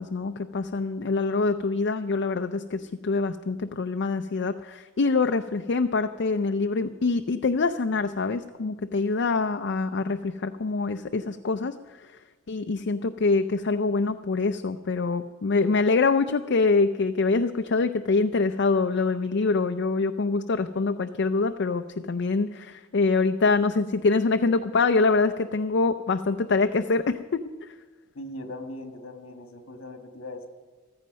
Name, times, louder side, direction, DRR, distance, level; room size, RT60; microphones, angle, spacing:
voice 1, 0.0-11.7 12.5-27.2 27.6-27.7, left 3 dB, 55° left, 8 dB, 0.5 m, -25 dB
voice 2, 28.1-30.5, left 1 dB, 70° left, 6 dB, 1.6 m, -39 dB
14.5 x 14.0 x 5.2 m, 1.4 s
head